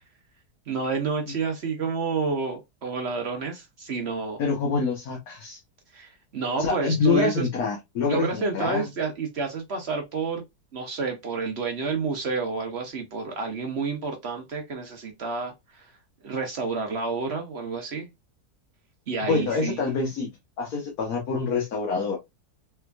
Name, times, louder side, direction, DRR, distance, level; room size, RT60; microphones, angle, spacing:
voice 1, 0.7-4.4 5.9-7.5 8.1-10.4 10.7-15.9 16.2-18.1 19.1-19.8, right 4 dB, 55° right, 0.8 m, -29 dB
voice 2, 4.4-5.6 6.6-8.9 19.2-20.3 20.6-22.2, left 4 dB, 65° left, 1.4 m, -26 dB
3.4 x 3.4 x 2.3 m
omnidirectional pair, 1.8 m